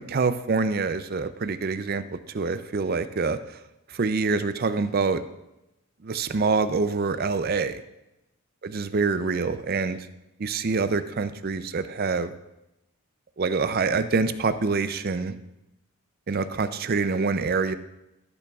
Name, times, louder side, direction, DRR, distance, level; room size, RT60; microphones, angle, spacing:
voice 1, 0.0-3.6 3.9-5.2 6.0-7.8 8.6-10.1 10.4-12.3 13.4-15.4 16.3-17.8, right 4 dB, 45° right, 11 dB, 0.4 m, -26 dB
13.5 x 8.4 x 2.4 m, 0.92 s
head